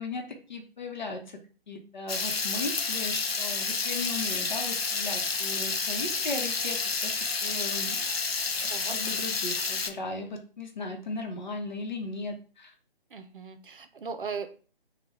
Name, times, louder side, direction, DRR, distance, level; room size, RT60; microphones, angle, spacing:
voice 1, 0.0-1.4 1.7-7.1 7.4-8.0 8.6-12.7, left 3 dB, 50° left, 3 dB, 0.9 m, -37 dB
Water tap faucet / Liquid, 2.1-9.9, left 4 dB, 85° left, 0.6 m, -30 dB
voice 2, 13.1-14.5, right 5 dB, 60° right, 8 dB, 0.6 m, -37 dB
3.2 x 2.3 x 3.1 m, 0.38 s
figure-of-eight pair, 145°, 29 cm